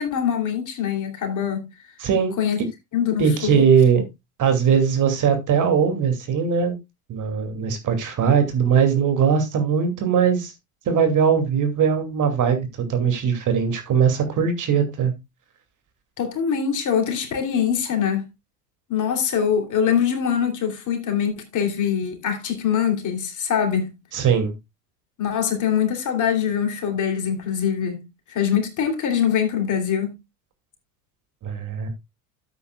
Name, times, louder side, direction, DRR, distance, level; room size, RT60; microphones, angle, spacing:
voice 1, 0.0-1.7 2.4-2.6 2.9-3.6 16.2-18.2 18.9-24.0 25.2-28.0 28.3-30.1, left 8 dB, 40° left, 3.1 m, -23 dB
voice 2, 2.0-2.3 3.2-4.0 4.4-6.7 7.1-10.5 10.9-15.1 24.1-24.5 31.4-31.9, right 7 dB, 40° right, 2.6 m, -20 dB
13.0 x 8.3 x 2.3 m
hypercardioid pair, 80°, 45 cm